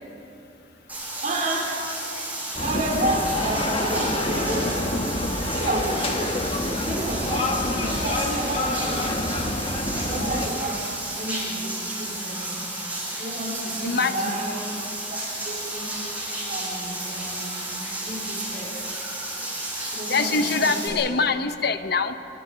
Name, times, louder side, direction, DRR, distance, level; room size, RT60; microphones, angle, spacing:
Bathtub (filling or washing), 0.9-20.9, right 1 dB, 10° right, 7.3 m, -32 dB
voice 1, 1.1-1.8 2.6-5.1 5.5-6.5 6.8-9.1 10.0-12.6 13.1-15.2 15.4-16.1 16.4-17.7 18.0-18.9 19.8-21.1, right 1 dB, 45° right, -1 dB, 4.6 m, -31 dB
sound 1, 2.6-10.5, left 1 dB, 35° left, 1.8 m, -27 dB
voice 2, 13.8-14.4 20.1-22.1, left 4 dB, 60° left, 9 dB, 1.0 m, -24 dB
29.0 x 23.0 x 5.2 m, 2.8 s
head